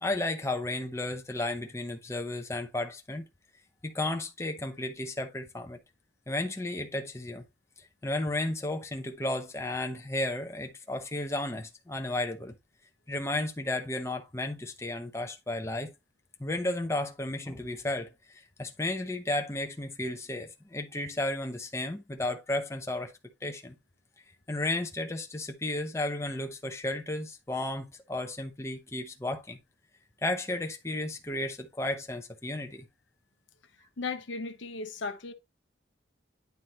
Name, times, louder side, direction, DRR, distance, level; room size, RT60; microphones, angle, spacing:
voice 1, 0.0-3.2 3.8-5.8 6.3-7.4 8.0-12.5 13.1-15.9 16.4-23.1 23.4-23.8 24.5-29.6 30.2-32.9, left 2 dB, 15° left, 0.8 m, -33 dB
voice 2, 34.0-35.3, left 4 dB, 80° left, 0.9 m, -36 dB
9.4 x 3.2 x 4.2 m
head